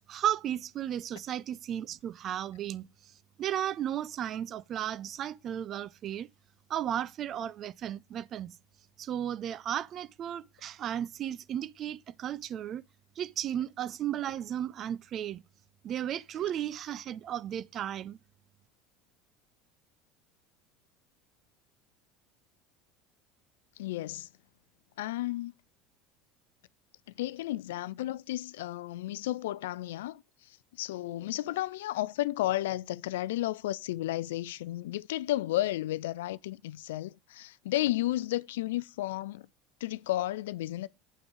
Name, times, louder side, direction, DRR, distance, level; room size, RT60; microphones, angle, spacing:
voice 1, 0.1-3.1 3.4-6.3 6.7-8.5 9.0-12.8 13.2-15.4 15.8-18.2, right 10 dB, 45° right, 0.5 m, -34 dB
voice 2, 23.8-24.3 25.0-25.5 27.2-39.5 39.8-40.9, left 15 dB, 70° left, 0.4 m, -33 dB
9.4 x 5.9 x 5.1 m
figure-of-eight pair, 70°, 0 cm